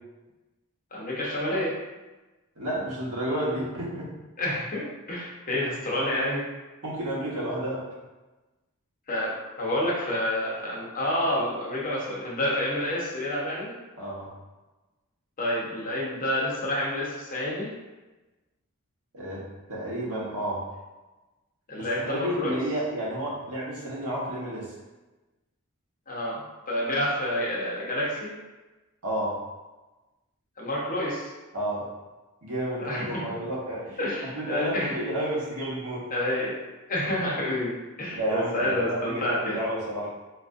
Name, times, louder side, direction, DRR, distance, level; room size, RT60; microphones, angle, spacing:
voice 1, 0.9-1.7 4.4-6.4 9.1-9.3 9.6-13.7 15.4-17.7 21.7-22.6 26.1-26.4 26.7-28.3 30.6-31.3 32.8-33.2 34.0-34.9 36.1-36.6 36.9-39.6, left 1 dB, 40° left, -5 dB, 0.9 m, -28 dB
voice 2, 2.6-4.1 6.8-7.8 14.0-14.3 19.1-19.4 19.7-20.6 21.8-24.7 29.0-29.4 31.5-31.9 32.4-34.1 34.3-36.0 38.1-40.1, right 1 dB, 85° right, -6 dB, 1.2 m, -31 dB
4.2 x 2.5 x 2.6 m, 1.1 s
head